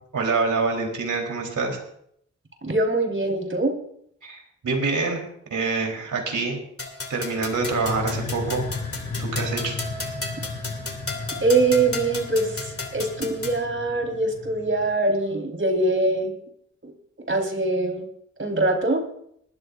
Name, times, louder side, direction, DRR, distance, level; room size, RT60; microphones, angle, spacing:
voice 1, 0.1-1.8 4.2-5.2 5.5-6.6 7.1-8.7 9.2-9.8, right 4 dB, 75° right, 1 dB, 4.2 m, -26 dB
voice 2, 2.6-3.8 11.4-16.3 16.8-16.9 17.3-18.0 18.4-19.0, right 2 dB, 40° right, 2 dB, 4.6 m, -23 dB
sound 1, 6.8-13.6, left 3 dB, 45° left, 3.0 m, -34 dB
sound 2, 7.4-15.0, left 3 dB, 90° left, 3.4 m, -35 dB
20.0 x 14.0 x 2.7 m, 0.70 s
cardioid pair, 40°, 31 cm